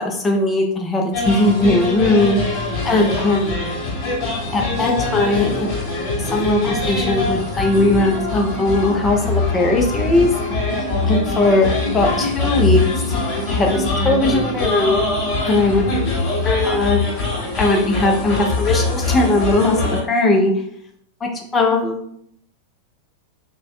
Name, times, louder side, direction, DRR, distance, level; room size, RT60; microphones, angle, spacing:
voice 1, 0.0-2.4 2.8-3.5 4.5-5.7 6.2-10.3 10.8-12.8 13.5-15.0 15.4-15.8 16.4-17.1 17.6-20.5 21.2-22.0, left 2 dB, 20° left, 1 dB, 0.5 m, -19 dB
sound 1, 1.1-20.0, left 3 dB, 35° left, 1.2 m, -23 dB
2.5 x 2.1 x 2.4 m, 0.69 s
figure-of-eight pair, 90°, 0 cm